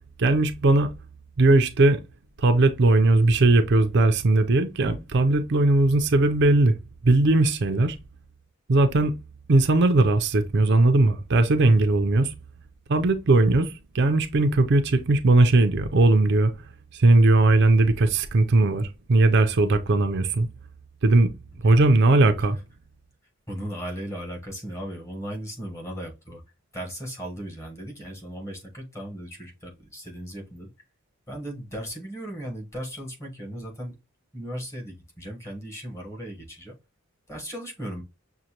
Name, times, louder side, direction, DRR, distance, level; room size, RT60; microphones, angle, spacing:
voice 1, 0.2-0.9 1.4-2.0 2.4-6.8 7.0-8.0 8.7-9.1 9.5-12.3 12.9-16.5 16.9-20.5 21.0-21.3 21.6-22.6, right 2 dB, 55° right, 0.5 m, -19 dB
voice 2, 23.5-26.4 26.7-30.7 31.3-34.0 34.3-36.8 37.3-38.0, equal, 15° left, 1.1 m, -36 dB
6.3 x 2.2 x 2.8 m
head